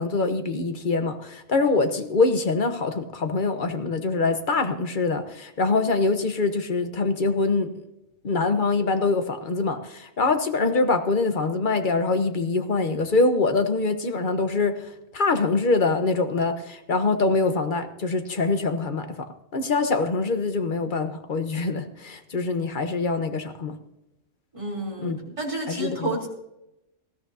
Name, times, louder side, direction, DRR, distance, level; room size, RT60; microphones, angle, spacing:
voice 1, 0.0-7.7 8.2-23.8 25.0-25.3 25.7-26.3, left 3 dB, 40° left, 8 dB, 1.2 m, -24 dB
voice 2, 24.5-26.3, right 2 dB, 25° right, -2 dB, 3.6 m, -30 dB
19.5 x 14.5 x 2.8 m, 0.89 s
omnidirectional pair, 1.3 m